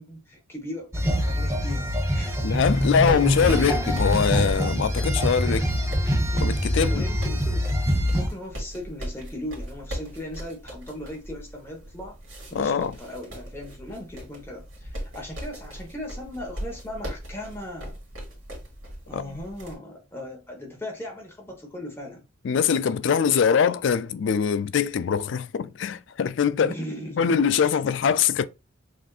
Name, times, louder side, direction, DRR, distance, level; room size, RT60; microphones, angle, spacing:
voice 1, 0.0-2.5 3.6-3.9 5.5-5.7 6.9-7.7 8.1-12.2 12.5-18.0 19.1-22.2 26.6-27.7, left 1 dB, 10° left, 1.2 m, -38 dB
sound 1, 0.9-8.3, equal, 15° right, 0.6 m, -24 dB
sound 2, 2.3-19.7, equal, 75° right, 2.0 m, -39 dB
voice 2, 2.4-5.6 6.4-7.0 12.5-12.9 19.1-19.4 22.4-26.7 27.2-28.5, left 6 dB, 65° left, 0.3 m, -23 dB
6.1 x 2.7 x 2.4 m
head